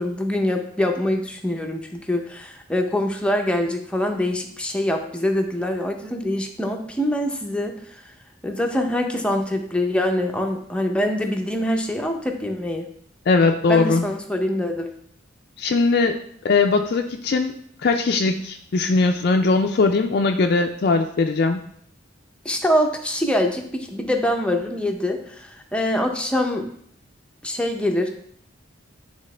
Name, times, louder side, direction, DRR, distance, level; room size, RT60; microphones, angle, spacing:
voice 1, 0.0-8.0 8.4-12.9 13.7-14.9 22.4-26.7 27.4-28.1, left 1 dB, 5° left, 3 dB, 0.6 m, -24 dB
voice 2, 13.3-14.0 15.6-16.2 16.4-17.5 17.8-21.6, left 3 dB, 55° left, 4 dB, 0.4 m, -20 dB
9.7 x 3.6 x 3.3 m, 0.64 s
head